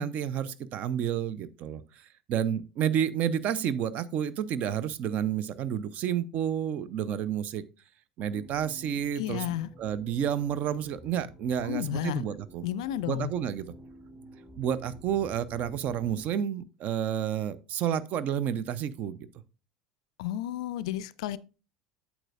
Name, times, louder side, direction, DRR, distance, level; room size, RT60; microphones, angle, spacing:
voice 1, 0.0-7.6 8.2-9.4 9.8-12.6 13.1-13.7 14.6-19.3, right 9 dB, 45° right, 0.6 m, -30 dB
sound 1, 8.3-16.3, equal, 5° right, 1.6 m, -51 dB
voice 2, 9.2-9.7 11.6-12.2 12.6-13.3 20.2-21.4, left 12 dB, 60° left, 0.4 m, -32 dB
8.9 x 7.1 x 2.4 m
figure-of-eight pair, 70°, 4 cm